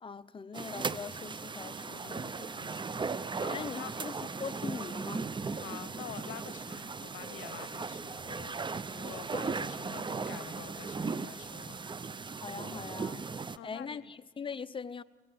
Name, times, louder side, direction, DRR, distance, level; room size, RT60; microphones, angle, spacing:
voice 1, 0.0-2.9 3.5-4.1 4.4-5.3 9.3-9.5 12.4-13.2 13.6-15.0, left 5 dB, 25° left, 0.7 m, -42 dB
sound 1, 0.5-13.6, right 4 dB, 25° right, 0.6 m, -37 dB
voice 2, 2.0-2.8 3.4-4.1 5.5-11.8 13.5-14.1, left 13 dB, 80° left, 0.8 m, -48 dB
sound 2, 5.4-12.1, right 2 dB, 50° right, 6.7 m, -65 dB
25.0 x 17.5 x 7.9 m
cardioid pair, 90°, 20 cm